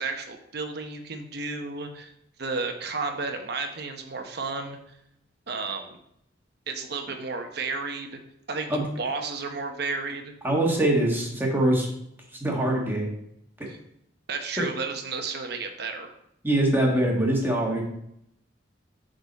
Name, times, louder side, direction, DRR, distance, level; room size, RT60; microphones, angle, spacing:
voice 1, 0.0-2.1 2.4-4.8 5.5-6.0 6.7-8.2 8.5-10.3 13.7-13.8 14.3-16.1, right 4 dB, 60° right, 5 dB, 0.9 m, -32 dB
voice 2, 10.4-11.9 12.4-13.1 13.6-13.7 14.6-14.7 16.4-17.8, right 1 dB, 10° right, -1 dB, 1.5 m, -23 dB
8.2 x 4.0 x 4.1 m, 0.76 s
head